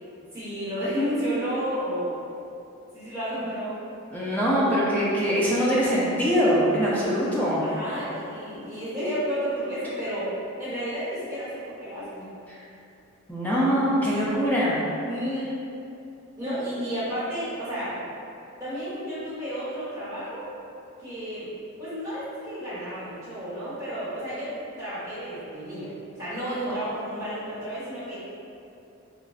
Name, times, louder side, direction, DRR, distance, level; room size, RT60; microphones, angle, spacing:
voice 1, 0.3-2.2 2.9-3.8 7.0-7.2 7.6-10.3 10.6-12.3 15.1-15.5 16.4-18.0 18.6-20.5 21.0-21.5 21.8-25.9 26.2-28.2, equal, 15° right, -13 dB, 1.0 m, -31 dB
voice 2, 4.1-7.6 13.3-14.8, equal, 10° left, -8 dB, 0.3 m, -23 dB
3.6 x 2.1 x 2.3 m, 2.7 s
head